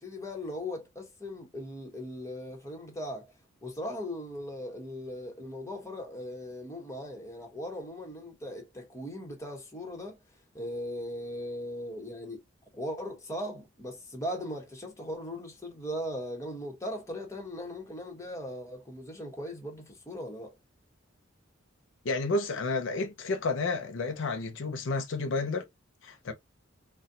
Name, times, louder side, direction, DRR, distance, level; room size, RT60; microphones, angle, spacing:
voice 1, 0.0-3.3 3.6-10.2 10.5-12.4 12.7-20.6, equal, 15° left, 1.0 m, -38 dB
voice 2, 22.0-25.7 26.0-26.3, left 3 dB, 65° left, 0.5 m, -31 dB
4.0 x 2.2 x 2.6 m
head